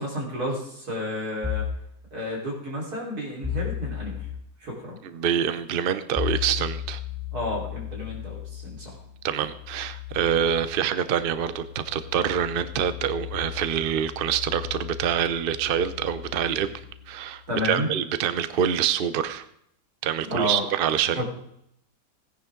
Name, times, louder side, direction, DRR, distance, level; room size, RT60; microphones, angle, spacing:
voice 1, 0.0-1.6 2.1-4.3 4.6-5.0 7.3-9.0 17.5-17.9 20.2-20.6 21.1-21.2, equal, 90° right, -3 dB, 4.7 m, -31 dB
sound 1, 1.4-1.9 3.4-4.4 6.2-17.5, left 10 dB, 15° right, 3.0 m, -36 dB
voice 2, 5.0-7.0 9.2-16.7 17.1-19.5 20.0-21.2, right 9 dB, 50° right, 12 dB, 0.7 m, -26 dB
17.0 x 10.0 x 3.8 m, 0.72 s
omnidirectional pair, 1.6 m